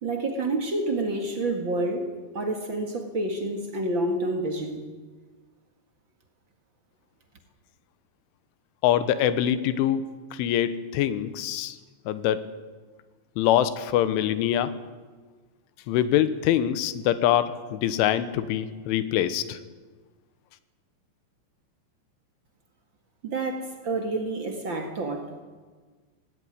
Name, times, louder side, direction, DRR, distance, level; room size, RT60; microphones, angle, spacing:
voice 1, 0.0-4.9 23.2-25.4, right 2 dB, 55° right, 4 dB, 1.3 m, -29 dB
voice 2, 8.8-10.1 10.3-11.8 12.1-12.5 13.4-14.8 15.9-19.6, left 11 dB, 90° left, 13 dB, 3.5 m, -24 dB
18.0 x 17.0 x 9.8 m, 1.4 s
omnidirectional pair, 5.4 m